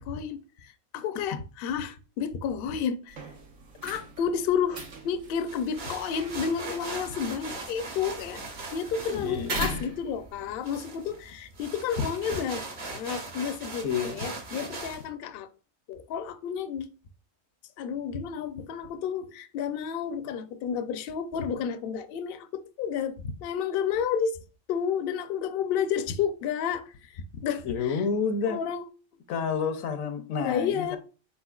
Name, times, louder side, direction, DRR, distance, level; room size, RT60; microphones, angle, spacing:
voice 1, 0.0-3.2 3.8-8.4 8.7-15.5 15.9-16.9 17.8-24.4 24.7-28.0 28.5-28.9 30.4-31.0, left 7 dB, 65° left, 0.6 m, -31 dB
sound 1, 3.1-10.6, right 2 dB, 80° right, 1.4 m, -40 dB
sound 2, 5.5-15.0, right 3 dB, 45° right, 0.8 m, -40 dB
voice 2, 9.1-9.7 13.8-14.2 27.6-28.6 29.3-31.0, left 6 dB, 90° left, 1.1 m, -29 dB
4.2 x 4.2 x 2.3 m
omnidirectional pair, 1.4 m